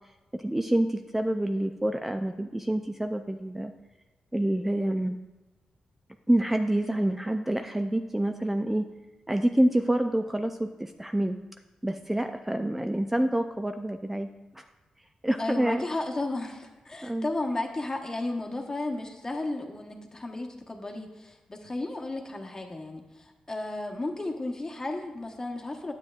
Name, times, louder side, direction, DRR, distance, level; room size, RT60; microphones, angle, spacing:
voice 1, 0.4-3.7 4.3-5.2 6.3-8.9 9.3-11.4 11.8-14.3 14.6-14.7 15.2-15.8 17.0-17.3, right 1 dB, 10° right, 6 dB, 0.4 m, -27 dB
voice 2, 15.4-25.9, left 2 dB, 30° left, 2 dB, 1.1 m, -33 dB
9.8 x 7.4 x 2.4 m, 1.1 s
cardioid pair, 55°, 2 cm